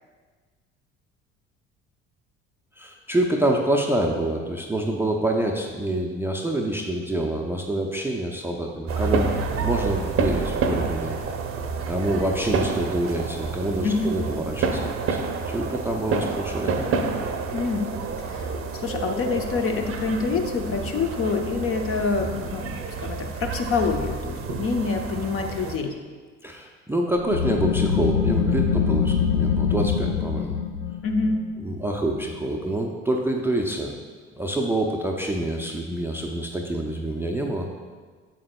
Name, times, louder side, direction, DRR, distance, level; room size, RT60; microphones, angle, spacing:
voice 1, 2.8-11.2 11.9-15.2 15.5-16.9 26.4-30.6 31.6-33.9 34.3-37.7, right 1 dB, 5° right, 1 dB, 0.6 m, -26 dB
sound 1, 8.9-25.8, right 4 dB, 35° right, 0.7 m, -29 dB
voice 2, 13.8-14.1 17.5-17.9 18.2-25.9 31.0-31.4, left 4 dB, 35° left, 4 dB, 0.8 m, -26 dB
sound 2, 27.2-32.5, left 6 dB, 85° left, 0.5 m, -24 dB
7.9 x 7.4 x 2.3 m, 1.5 s
figure-of-eight pair, 55°, 36 cm